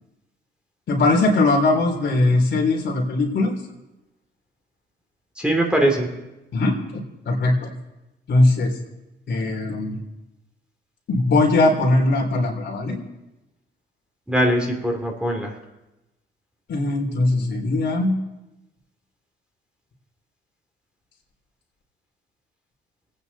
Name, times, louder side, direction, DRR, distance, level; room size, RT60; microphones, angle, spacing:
voice 1, 0.9-3.5 6.5-7.7 8.3-8.7 9.3-10.0 11.1-13.0 16.7-18.1, left 2 dB, 65° left, 0 dB, 3.3 m, -20 dB
voice 2, 5.4-6.1 14.3-15.6, right 1 dB, 5° right, 1 dB, 2.6 m, -21 dB
27.0 x 9.3 x 4.1 m, 0.99 s
cardioid pair, 90°, 20 cm